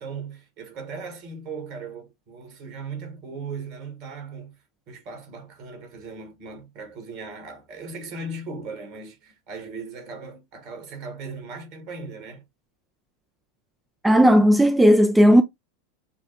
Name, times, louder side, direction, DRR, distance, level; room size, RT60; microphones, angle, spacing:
voice 1, 0.0-4.6 4.9-12.4, right 4 dB, 45° right, 1.7 m, -38 dB
voice 2, 14.0-15.4, equal, 5° right, 0.4 m, -15 dB
6.8 x 2.4 x 2.9 m
figure-of-eight pair, 85°, 0 cm